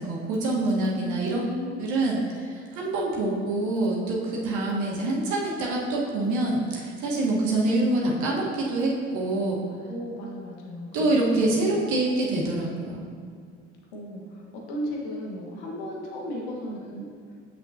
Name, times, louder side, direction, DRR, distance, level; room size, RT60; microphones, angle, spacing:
voice 1, 0.0-1.4 1.8-2.2 2.5-9.6 10.9-13.1, right 2 dB, 55° right, -3 dB, 1.4 m, -26 dB
voice 2, 1.0-2.1 9.9-11.1 11.4-11.7 13.9-17.1, equal, 70° left, -2 dB, 1.4 m, -35 dB
7.3 x 6.1 x 2.8 m, 2.1 s
hypercardioid pair, 70°, 35 cm